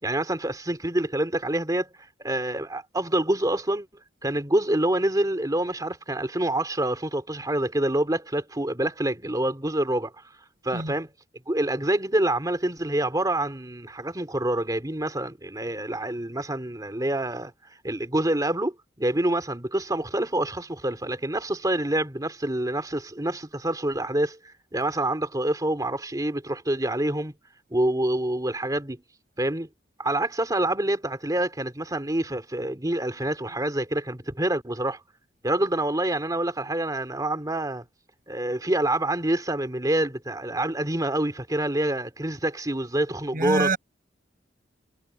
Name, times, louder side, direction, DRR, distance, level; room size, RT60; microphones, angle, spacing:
voice 1, 0.0-3.9 4.2-10.1 10.6-11.1 11.5-17.5 17.8-27.3 27.7-29.0 29.4-29.7 30.0-35.0 35.4-37.8 38.3-43.7, right 1 dB, 20° right, 2.9 m, -26 dB
voice 2, 43.3-43.8, right 3 dB, 50° right, 7.6 m, -25 dB
head